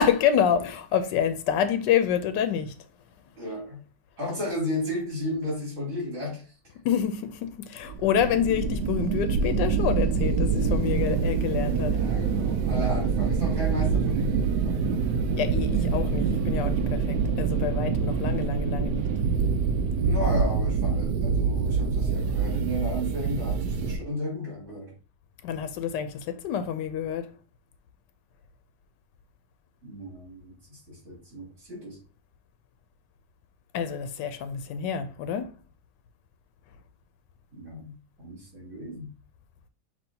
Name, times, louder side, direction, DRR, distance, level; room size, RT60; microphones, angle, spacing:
voice 1, 0.0-2.7 6.8-12.0 15.4-19.1 25.4-27.3 33.7-35.5, left 8 dB, 90° left, 1.3 m, -27 dB
voice 2, 3.4-3.8 4.2-6.5 11.9-15.1 20.0-24.9 29.8-32.0 37.5-39.1, left 1 dB, 55° right, 3.3 m, -34 dB
sound 1, 7.9-24.0, right 5 dB, 75° right, 1.1 m, -25 dB
6.1 x 2.9 x 2.7 m
omnidirectional pair, 1.9 m